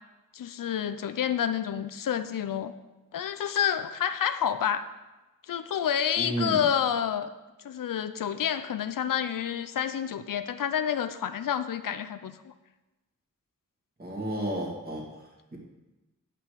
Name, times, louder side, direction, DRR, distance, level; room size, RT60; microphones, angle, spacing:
voice 1, 0.3-2.7 3.1-4.8 5.5-7.3 7.6-12.5, left 9 dB, 80° left, 11 dB, 0.6 m, -29 dB
voice 2, 6.2-6.6 14.0-15.0 15.5-15.6, right 1 dB, 30° right, -2 dB, 2.3 m, -31 dB
9.5 x 5.8 x 6.7 m, 1.1 s
wide cardioid pair, 155°, 32 cm